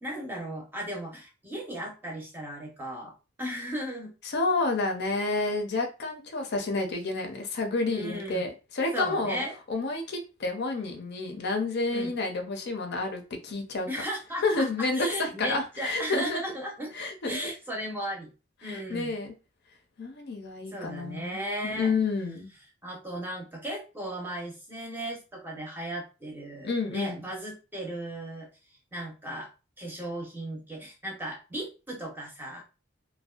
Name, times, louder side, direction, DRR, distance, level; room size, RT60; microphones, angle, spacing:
voice 1, 0.0-4.1 7.9-8.5 8.9-9.5 11.9-12.1 13.9-16.9 17.2-18.3 18.6-19.2 20.7-21.9 22.8-28.5 28.9-29.5 29.8-32.6, right 1 dB, 10° right, 0.6 m, -36 dB
voice 2, 4.2-9.4 9.7-13.9 14.4-16.4 16.9-17.5 18.6-19.3 20.0-22.5 26.6-27.2, left 3 dB, 55° left, 0.5 m, -30 dB
2.5 x 2.2 x 2.3 m
head